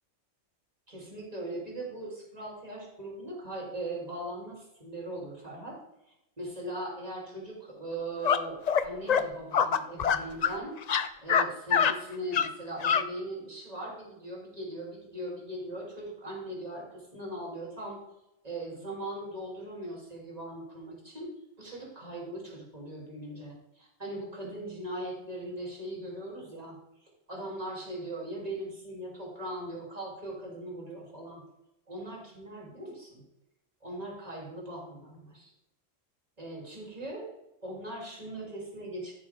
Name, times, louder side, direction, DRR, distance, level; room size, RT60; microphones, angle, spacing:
voice 1, 0.9-5.8 6.4-10.7 11.2-18.0 18.4-21.3 21.6-26.8 27.3-31.4 31.9-33.2 33.8-35.5 36.4-37.3 37.6-39.1, right 1 dB, 30° right, -3 dB, 3.4 m, -39 dB
sound 1, 8.2-8.4 8.7-8.8 9.1-9.2 9.5-10.6 10.8-11.4 11.7-11.9 12.3-12.5 12.8-13.0, left 7 dB, 55° left, 0.4 m, -24 dB
15.0 x 6.5 x 3.6 m, 0.88 s
omnidirectional pair, 1.4 m